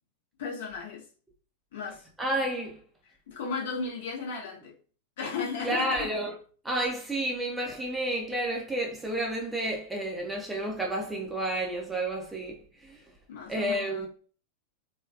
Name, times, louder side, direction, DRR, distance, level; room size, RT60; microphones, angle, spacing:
voice 1, 0.4-1.1 1.7-2.1 3.1-4.7 5.2-6.1 13.3-14.1, left 4 dB, 55° left, 0.8 m, -35 dB
voice 2, 2.2-2.8 5.6-6.3 6.6-13.0 13.5-14.1, right 1 dB, 5° right, 0.6 m, -31 dB
3.2 x 2.3 x 2.3 m
figure-of-eight pair, 90°, 0 cm